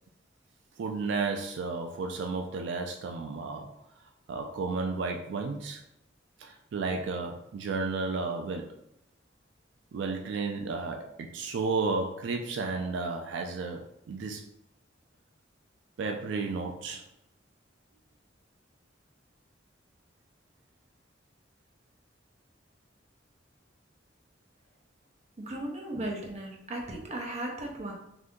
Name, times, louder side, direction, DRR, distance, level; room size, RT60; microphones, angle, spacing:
voice 1, 0.8-3.7 4.3-5.8 6.4-8.7 9.9-14.4 16.0-17.0, right 4 dB, 75° right, 3 dB, 0.3 m, -33 dB
voice 2, 25.4-27.9, right 1 dB, 35° right, 0 dB, 0.6 m, -36 dB
2.7 x 2.5 x 3.6 m, 0.79 s
head